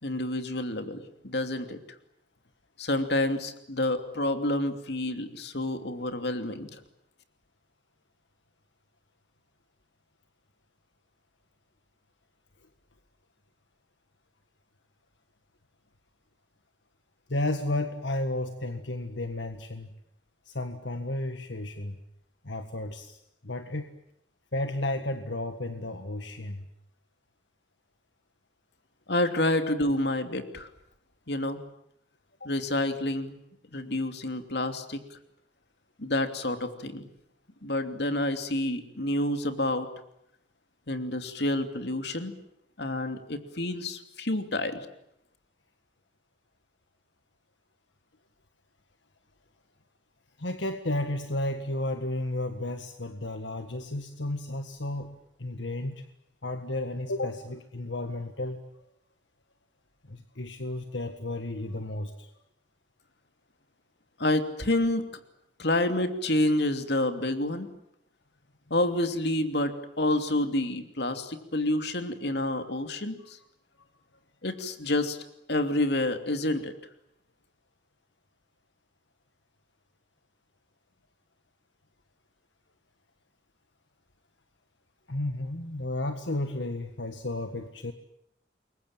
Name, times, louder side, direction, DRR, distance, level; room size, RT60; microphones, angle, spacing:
voice 1, 0.0-1.8 2.8-6.7 29.1-30.7 31.3-31.6 32.4-33.4 33.7-35.0 36.0-37.1 37.6-39.9 40.9-42.3 42.8-44.9 64.2-65.0 65.6-67.7 68.7-73.4 74.4-75.2 75.5-76.7, left 1 dB, 60° left, 7 dB, 2.9 m, -28 dB
voice 2, 17.3-19.9 20.5-22.0 22.4-23.2 23.4-23.9 24.5-26.7 50.4-56.0 56.4-58.6 60.1-62.3 72.6-72.7 85.1-87.9, left 1 dB, 80° left, 7 dB, 1.8 m, -33 dB
28.5 x 23.0 x 9.0 m, 0.77 s
head